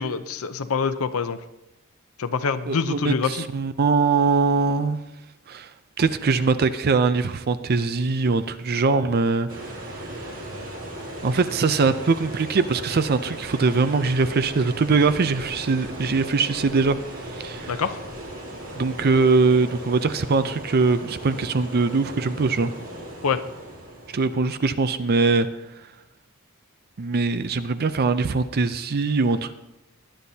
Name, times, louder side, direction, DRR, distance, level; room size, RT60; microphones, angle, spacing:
voice 1, 0.0-1.4 2.2-3.4 17.7-18.0 23.2-23.4, left 5 dB, 80° left, 9 dB, 0.6 m, -25 dB
voice 2, 2.7-5.0 5.5-5.7 6.0-9.5 11.2-17.0 17.3-17.7 18.7-22.7 24.1-25.5 27.0-29.5, right 4 dB, 45° right, 12 dB, 0.5 m, -22 dB
sound 1, 9.5-24.5, right 1 dB, 65° right, 2.9 m, -37 dB
20.5 x 10.0 x 2.8 m, 0.94 s
head